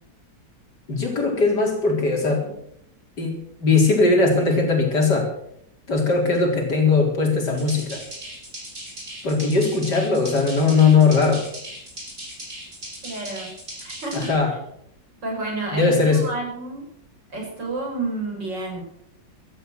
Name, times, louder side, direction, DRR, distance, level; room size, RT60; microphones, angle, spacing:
voice 1, 0.9-2.5 3.2-3.4 3.6-5.3 5.9-8.0 9.2-11.4 14.1-14.5 15.7-16.2, left 4 dB, 65° left, 1 dB, 4.7 m, -19 dB
sound 1, 7.5-14.3, right 1 dB, 40° right, 6.5 m, -38 dB
voice 2, 13.0-13.5 13.8-14.3 15.2-16.8 17.3-18.8, right 2 dB, 75° right, 0 dB, 6.3 m, -30 dB
16.0 x 13.5 x 6.4 m, 0.72 s
omnidirectional pair, 2.0 m